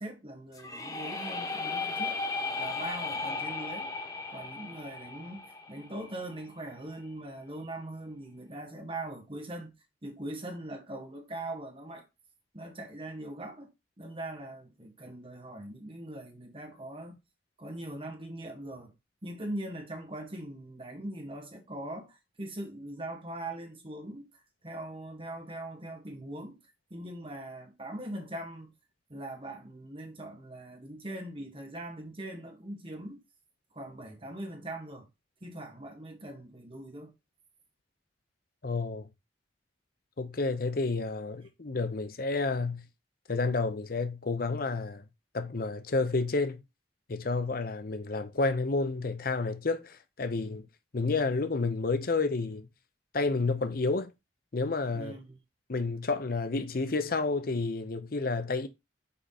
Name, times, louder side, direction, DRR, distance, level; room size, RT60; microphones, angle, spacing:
voice 1, 0.0-2.2 2.5-3.9 4.3-9.7 10.0-12.1 12.5-13.7 14.0-17.2 17.6-18.9 19.2-24.3 24.6-26.6 26.9-28.7 29.1-33.2 33.7-35.1 35.4-37.1 54.9-55.4, right 1 dB, 30° right, 1.7 m, -41 dB
sound 1, 0.5-6.4, left 3 dB, 20° left, 0.9 m, -36 dB
voice 2, 38.6-39.1 40.2-42.8 43.3-45.0 45.3-46.6 47.1-50.7 50.9-52.7 53.1-54.1 54.5-55.2 55.7-58.7, left 3 dB, 55° left, 0.7 m, -30 dB
5.6 x 4.8 x 4.2 m
head